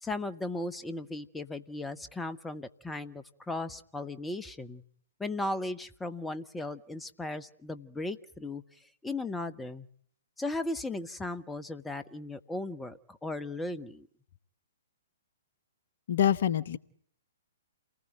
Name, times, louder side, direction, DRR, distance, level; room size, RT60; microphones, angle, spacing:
voice 1, 0.0-4.8 5.2-8.6 9.0-9.9 10.4-14.1, left 2 dB, 5° left, 12 dB, 1.2 m, -36 dB
voice 2, 16.1-16.8, left 9 dB, 50° left, 17 dB, 1.1 m, -25 dB
29.0 x 19.5 x 9.1 m, 0.64 s
figure-of-eight pair, 120°, 0 cm